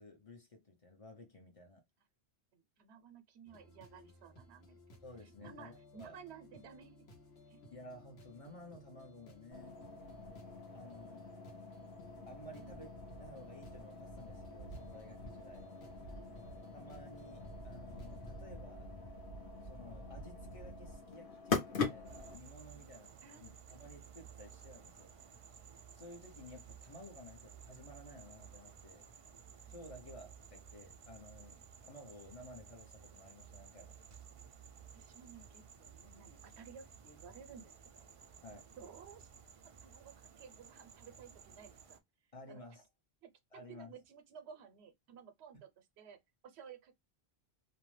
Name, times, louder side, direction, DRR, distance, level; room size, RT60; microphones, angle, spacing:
voice 1, 0.0-1.8 5.0-6.2 7.7-9.8 10.7-11.3 12.3-15.6 16.7-18.9 19.6-23.1 23.4-25.6 25.9-29.0 29.7-34.0 38.4-38.7 42.3-42.8 43.5-43.9, left 1 dB, 40° left, 0.6 m, -54 dB
voice 2, 2.5-4.8 5.4-7.1 7.5-7.6 12.5-12.9 16.1-16.3 23.2-23.8 29.6-29.7 34.9-38.1 38.8-39.3 39.8-42.0 42.5-42.6 43.2-46.9, right 7 dB, 85° right, 0.9 m, -55 dB
sound 1, 3.5-18.4, left 1 dB, 75° left, 1.1 m, -58 dB
sound 2, 9.5-22.4, left 4 dB, 55° left, 1.0 m, -43 dB
sound 3, 22.0-42.0, right 7 dB, 60° right, 0.3 m, -56 dB
2.6 x 2.1 x 3.1 m
omnidirectional pair, 1.1 m